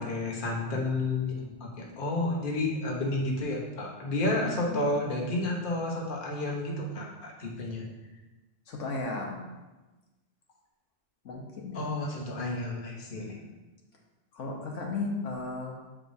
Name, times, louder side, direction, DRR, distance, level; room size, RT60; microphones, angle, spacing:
voice 1, 0.0-7.9 11.7-13.4, left 2 dB, 45° left, -2 dB, 1.1 m, -31 dB
voice 2, 4.3-4.9 8.7-9.5 11.2-11.8 13.2-13.5 14.3-15.8, left 3 dB, 90° left, -1 dB, 1.3 m, -35 dB
7.3 x 4.8 x 2.7 m, 1.1 s
omnidirectional pair, 1.2 m